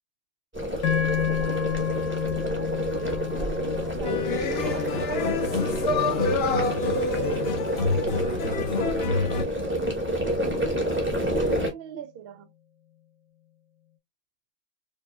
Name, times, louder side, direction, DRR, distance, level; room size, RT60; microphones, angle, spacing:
sound 1, 0.5-11.7, equal, 10° right, 0.9 m, -28 dB
sound 2, 0.8-9.2, left 8 dB, 80° left, 1.3 m, -32 dB
voice 1, 2.3-2.8 3.4-10.4 10.8-12.5, right 9 dB, 65° right, 0.6 m, -44 dB
sound 3, 4.0-9.4, left 4 dB, 55° left, 0.8 m, -27 dB
4.6 x 2.6 x 2.2 m
omnidirectional pair, 1.5 m